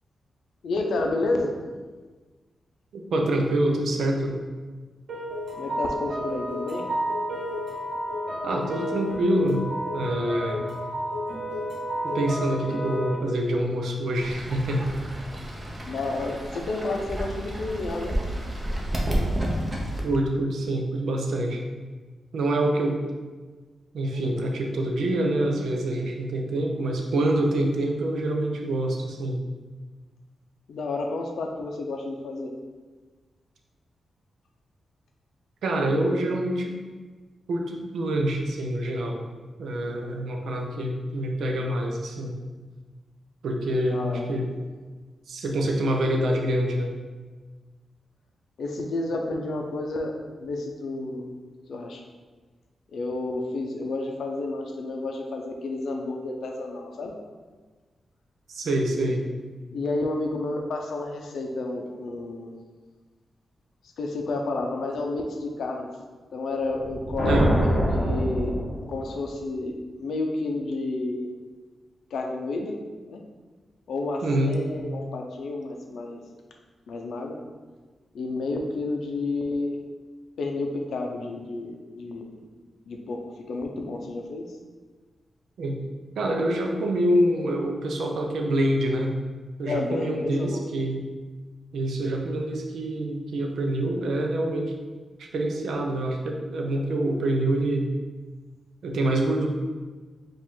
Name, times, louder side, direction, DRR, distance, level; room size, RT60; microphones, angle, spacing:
voice 1, 0.6-1.5 5.6-6.9 15.8-18.2 24.1-24.3 30.7-32.5 43.8-44.4 48.6-50.1 50.4-51.3 51.7-52.0 52.9-57.1 59.7-62.5 64.0-65.9 66.3-68.5 68.9-71.3 72.1-72.7 73.1-73.2 73.9-76.2 76.9-77.4 78.1-79.8 80.4-82.4 82.9-83.2 83.5-84.4 89.7-90.7, left 2 dB, 80° left, 2 dB, 0.5 m, -30 dB
voice 2, 3.1-4.3 8.4-9.6 9.9-10.8 12.0-14.8 20.0-21.6 22.3-23.0 23.9-29.4 35.6-36.8 37.5-39.3 39.6-42.3 43.4-44.4 45.3-46.9 58.5-59.2 67.2-67.5 74.2-74.6 85.6-85.8 86.2-89.1 89.6-91.1 91.7-94.7 95.2-97.9 98.8-99.5, right 1 dB, 85° right, 1 dB, 0.6 m, -26 dB
sound 1, 5.1-13.2, equal, 65° right, 1.4 m, -31 dB
Fowl / Bird, 14.2-20.0, right 1 dB, 30° right, 0.8 m, -30 dB
sound 2, 66.7-69.3, equal, 5° right, 1.1 m, -24 dB
4.9 x 2.5 x 3.6 m, 1.4 s
cardioid pair, 85°, 0 cm